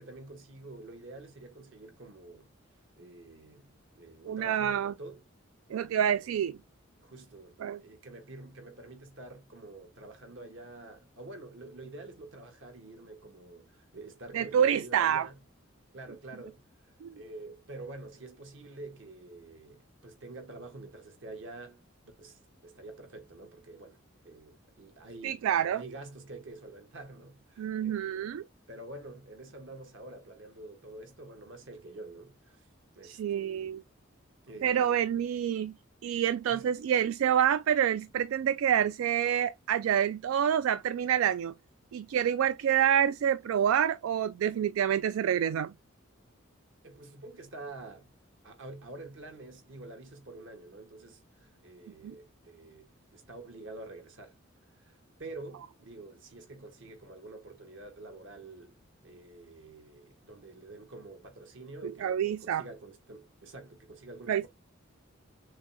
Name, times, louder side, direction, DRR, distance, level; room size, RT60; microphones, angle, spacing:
voice 1, 0.0-2.5 3.0-5.2 6.2-6.4 7.0-15.4 15.9-21.8 22.2-28.4 28.7-32.7 32.9-33.8 34.4-35.2 36.5-36.7 46.8-48.1 48.4-54.3 54.8-58.8 59.0-64.5, right 2 dB, 65° right, 1.3 m, -47 dB
voice 2, 4.3-4.9 5.7-6.6 7.6-7.8 14.3-15.3 17.0-17.1 25.2-25.8 27.6-28.4 33.0-33.8 34.6-35.7 36.0-41.5 41.9-45.7 52.0-52.1 62.0-62.6 64.3-64.5, right 9 dB, 85° right, 0.3 m, -27 dB
6.3 x 2.2 x 2.7 m
head